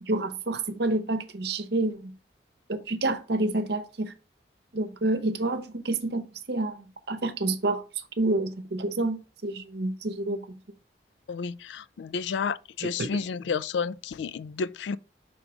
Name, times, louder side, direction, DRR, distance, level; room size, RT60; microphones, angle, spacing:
voice 1, 0.0-2.2 2.7-4.1 4.7-7.8 8.2-10.6 13.0-13.1, right 2 dB, 65° right, 0.8 m, -28 dB
voice 2, 11.3-15.0, left 5 dB, 75° left, 0.3 m, -31 dB
6.2 x 3.8 x 4.7 m
head